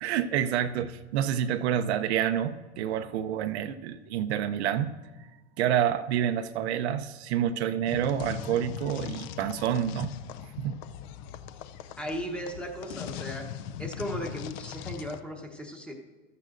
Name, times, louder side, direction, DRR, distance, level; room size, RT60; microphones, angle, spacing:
voice 1, 0.0-5.0 5.6-10.1 10.6-10.8, right 10 dB, 70° right, 10 dB, 0.7 m, -28 dB
sound 1, 7.9-15.2, left 9 dB, 40° left, 0.5 m, -40 dB
voice 2, 12.0-13.5 13.8-15.9, equal, 5° left, 2 dB, 1.0 m, -36 dB
15.0 x 13.0 x 2.6 m, 1.3 s
supercardioid pair, 155°, 34 cm